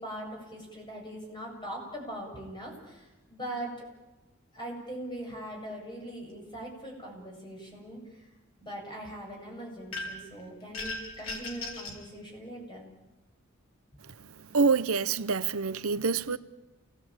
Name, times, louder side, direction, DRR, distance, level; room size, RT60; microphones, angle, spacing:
voice 1, 0.0-3.9 4.5-8.3 8.6-12.9 15.9-16.0, right 1 dB, 20° left, 7.8 m, -41 dB
sound 1, 9.9-10.3 10.7-12.0, left 2 dB, 85° left, 4.5 m, -37 dB
voice 2, 14.5-16.4, right 5 dB, 90° right, 0.8 m, -26 dB
29.5 x 19.0 x 8.9 m
head